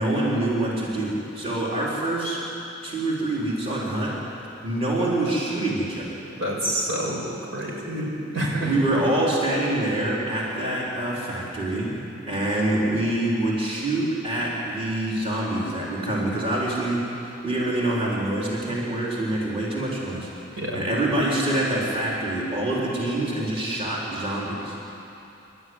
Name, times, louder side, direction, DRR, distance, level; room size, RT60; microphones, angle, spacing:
voice 1, 0.0-2.4 2.8-4.2 4.6-6.2 8.6-11.9 12.3-20.3 20.7-24.8, right 1 dB, 30° right, -6 dB, 4.2 m, -25 dB
voice 2, 6.4-7.3 7.5-8.7 20.6-20.8, right 1 dB, 75° right, -2 dB, 6.0 m, -27 dB
28.0 x 13.0 x 9.7 m, 2.8 s
head